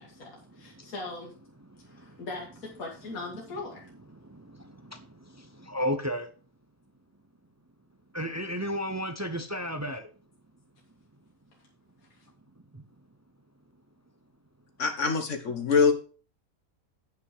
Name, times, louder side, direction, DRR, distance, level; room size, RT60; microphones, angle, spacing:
voice 1, 0.0-1.3 1.8-3.9 12.1-12.2, left 3 dB, 75° left, -2 dB, 2.2 m, -40 dB
voice 2, 5.6-6.3 8.1-10.0, equal, 20° right, 8 dB, 0.4 m, -31 dB
voice 3, 14.8-15.9, left 5 dB, 55° left, 7 dB, 1.5 m, -24 dB
9.0 x 5.9 x 4.8 m, 0.38 s
omnidirectional pair, 1.5 m